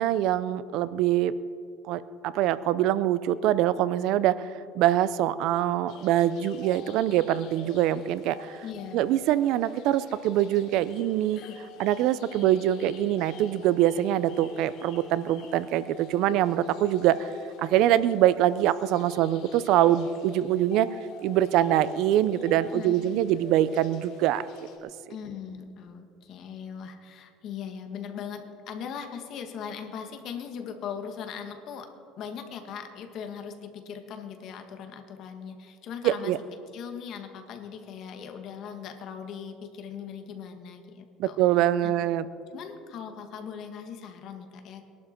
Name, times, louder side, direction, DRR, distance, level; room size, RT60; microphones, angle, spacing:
voice 1, 0.0-1.4 1.9-8.6 8.9-11.4 11.8-17.3 17.6-21.0 21.2-24.4 24.8-24.9 36.0-36.4 41.2-42.3, right 12 dB, 60° right, 16 dB, 0.5 m, -24 dB
sound 1, 5.9-24.8, left 2 dB, 65° left, 2.6 m, -47 dB
voice 2, 8.6-9.0 11.3-11.6 12.3-12.7 22.7-23.2 25.1-31.9 32.2-36.3 36.7-41.4 41.8-41.9 42.5-44.8, left 7 dB, 50° left, 6 dB, 1.6 m, -39 dB
21.5 x 11.5 x 4.5 m, 2.4 s
cardioid pair, 150°, 0 cm